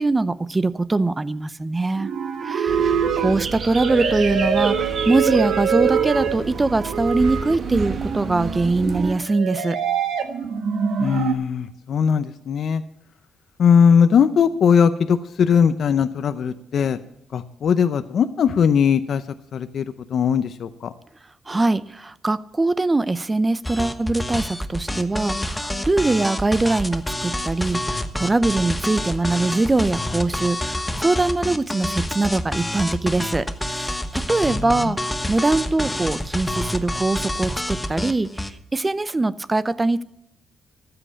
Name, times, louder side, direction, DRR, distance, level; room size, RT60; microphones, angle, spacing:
voice 1, 0.0-2.1 2.4-9.8 21.5-40.0, right 2 dB, 20° right, 17 dB, 0.6 m, -22 dB
sound 1, 2.0-11.3, right 7 dB, 70° right, 1.6 m, -24 dB
sound 2, 2.7-9.1, right 5 dB, 45° right, 1.4 m, -32 dB
voice 2, 11.0-12.8 13.6-17.0 17.3-19.2 19.5-20.9 34.5-34.9, left 7 dB, 60° left, 10 dB, 0.7 m, -19 dB
sound 3, 23.6-38.5, left 1 dB, 10° left, 1.1 m, -27 dB
13.0 x 7.8 x 8.5 m, 0.80 s
cardioid pair, 90°, 0 cm